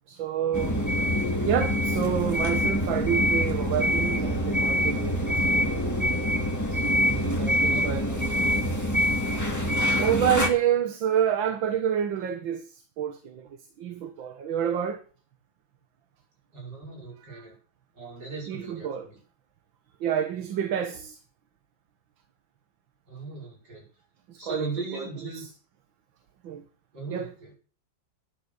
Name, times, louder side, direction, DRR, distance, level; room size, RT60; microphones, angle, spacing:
voice 1, 0.1-0.8 1.5-5.5 6.7-8.0 10.0-15.0 17.3-17.4 18.5-19.1 20.0-21.2 24.3-25.1 25.3-25.5 26.4-26.6 27.1-27.3, right 9 dB, 80° right, 1.9 m, -28 dB
sound 1, 0.5-10.5, equal, 10° left, 1.9 m, -25 dB
voice 2, 6.9-8.2 16.5-17.5 17.9-19.2 23.1-23.8 24.4-25.4 26.9-27.5, right 3 dB, 60° right, 6.3 m, -38 dB
12.5 x 9.7 x 6.6 m
omnidirectional pair, 2.1 m